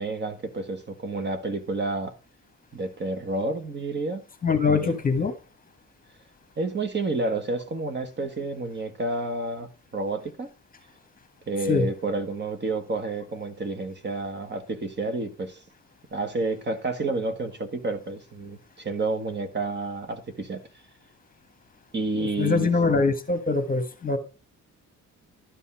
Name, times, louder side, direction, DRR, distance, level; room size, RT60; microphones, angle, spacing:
voice 1, 0.0-2.2 2.7-4.2 4.7-5.0 6.6-10.5 11.5-15.6 16.1-20.6 21.9-22.7, right 3 dB, 35° right, 1.6 m, -30 dB
voice 2, 4.4-5.3 11.7-11.9 22.2-24.2, left 4 dB, 25° left, 1.5 m, -23 dB
12.0 x 5.6 x 5.6 m
cardioid pair, 125°, 31 cm